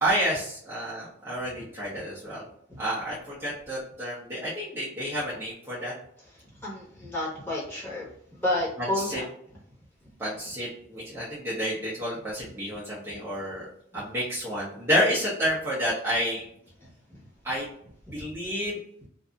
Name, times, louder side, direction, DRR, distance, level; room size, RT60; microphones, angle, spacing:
voice 1, 0.0-2.4 2.8-5.9 8.9-9.2 10.2-13.7 13.9-16.4 17.4-17.7 18.1-18.8, equal, 10° right, -9 dB, 0.7 m, -29 dB
voice 2, 6.6-8.1 8.3-9.2 10.2-10.3 13.1-13.2 13.9-14.0 17.1-17.2, left 1 dB, 10° left, -7 dB, 1.1 m, -31 dB
2.7 x 2.6 x 2.4 m, 0.67 s
head